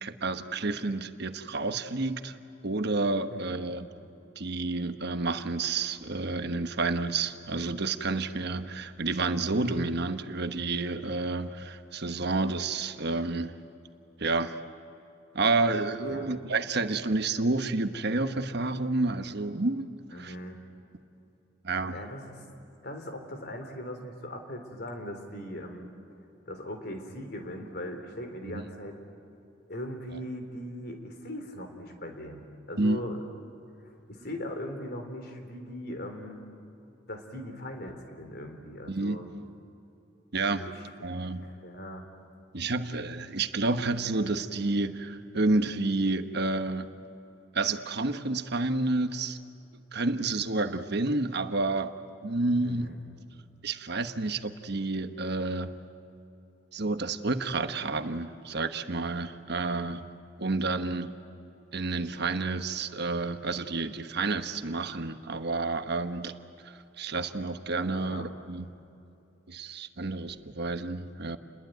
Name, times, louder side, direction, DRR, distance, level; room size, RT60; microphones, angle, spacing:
voice 1, 0.0-2.3 2.6-3.9 4.4-13.5 14.2-14.6 15.3-20.3 21.6-22.0 28.4-28.6 32.8-33.0 38.9-39.2 40.3-40.7 41.0-41.5 42.5-46.9 47.5-49.4 49.9-52.0 52.2-52.9 53.6-55.7 56.7-60.0 60.4-61.1 61.7-66.3 67.0-68.7 69.5-71.4, right 3 dB, 60° right, 9 dB, 1.2 m, -30 dB
voice 2, 3.3-3.7 16.1-16.4 20.1-20.6 21.9-22.5 22.8-25.9 26.5-29.0 29.7-33.2 33.8-36.4 37.1-39.3 40.6-40.8 41.4-42.1 52.6-53.0 68.0-68.3, left 1 dB, 55° left, 5 dB, 3.7 m, -40 dB
30.0 x 21.5 x 9.3 m, 2.8 s
head